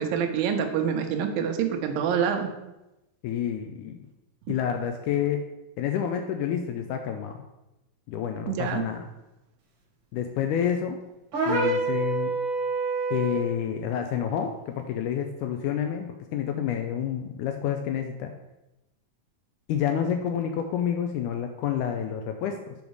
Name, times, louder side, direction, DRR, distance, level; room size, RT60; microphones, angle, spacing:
voice 1, 0.0-2.5 8.5-8.8, right 7 dB, 85° right, 5 dB, 2.6 m, -26 dB
voice 2, 3.2-4.0 4.5-5.4 5.8-7.4 8.1-9.1 10.1-11.0 11.5-12.3 13.1-18.3 19.7-22.8, left 9 dB, 80° left, 5 dB, 1.8 m, -29 dB
sound 1, 11.3-13.5, right 3 dB, 50° right, 1.5 m, -27 dB
7.1 x 5.4 x 4.7 m, 0.96 s
omnidirectional pair, 4.0 m